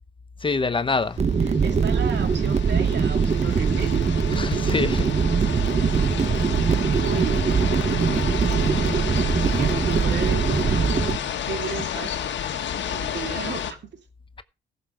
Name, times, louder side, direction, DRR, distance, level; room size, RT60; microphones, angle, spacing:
voice 1, 0.4-1.2 4.4-5.1, left 4 dB, 25° left, 0.8 m, -25 dB
sound 1, 1.2-13.7, left 9 dB, 65° left, 1.7 m, -31 dB
sound 2, 1.2-11.2, right 6 dB, 30° right, 1.1 m, -22 dB
voice 2, 1.4-4.1 7.0-7.4 8.4-10.6 11.4-12.2 12.9-14.0, right 7 dB, 60° right, 2.5 m, -34 dB
15.0 x 6.8 x 5.0 m
cardioid pair, 90°, 20 cm